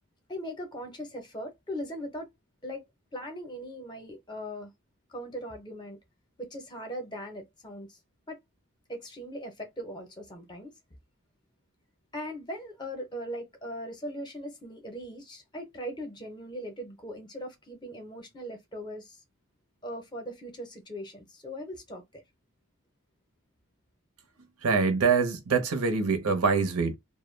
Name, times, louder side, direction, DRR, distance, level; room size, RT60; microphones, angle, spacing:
voice 1, 0.3-2.3 2.6-2.8 3.1-4.7 5.1-6.0 6.4-8.0 8.3-8.4 8.9-10.7 12.1-19.2 19.8-22.2, equal, 20° left, 0.6 m, -39 dB
voice 2, 24.6-26.9, right 5 dB, 70° right, 0.6 m, -24 dB
2.2 x 2.1 x 3.1 m
head